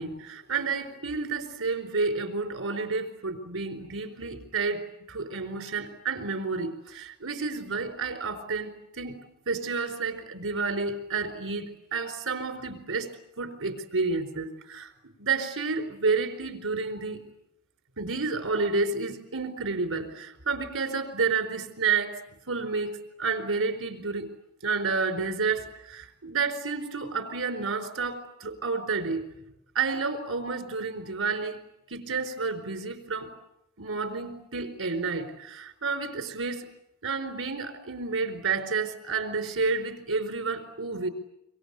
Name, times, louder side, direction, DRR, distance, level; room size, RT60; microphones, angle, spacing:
voice 1, 0.0-9.2 9.5-14.9 15.2-17.2 18.0-22.2 22.5-24.3 24.6-29.3 29.7-31.6 31.9-33.3 33.8-36.7 37.0-41.1, right 4 dB, 60° right, 7 dB, 4.3 m, -30 dB
26.5 x 25.0 x 8.4 m, 0.86 s
head